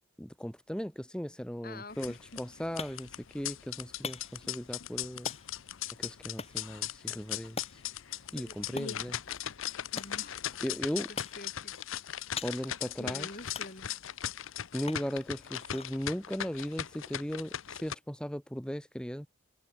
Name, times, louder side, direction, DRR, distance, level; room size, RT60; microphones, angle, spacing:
voice 1, 0.2-5.3 6.0-7.8 8.3-9.2 10.6-11.1 12.4-13.3 14.7-19.3, equal, 5° left, 1.1 m, -37 dB
voice 2, 1.6-2.4 8.3-8.9 9.9-10.4 10.9-11.7 13.0-13.9, left 2 dB, 45° left, 5.1 m, -48 dB
sound 1, 1.9-17.9, left 11 dB, 75° left, 0.7 m, -39 dB
sound 2, 2.2-17.8, left 5 dB, 30° left, 2.0 m, -47 dB
head